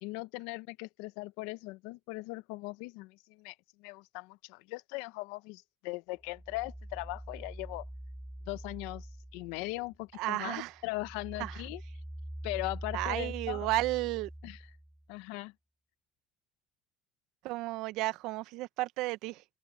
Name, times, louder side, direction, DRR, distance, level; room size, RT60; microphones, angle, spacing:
voice 1, 0.0-7.9 8.5-9.1 9.3-11.8 12.4-13.7 14.4-14.6 15.1-15.5, left 22 dB, 80° left, 1.0 m, -39 dB
sound 1, 6.2-10.1 10.5-15.1, right 1 dB, 5° right, 5.9 m, -44 dB
voice 2, 10.2-10.7 11.4-11.6 12.9-14.3 17.4-19.4, right 19 dB, 70° right, 1.0 m, -33 dB
supercardioid pair, 90°, 0 cm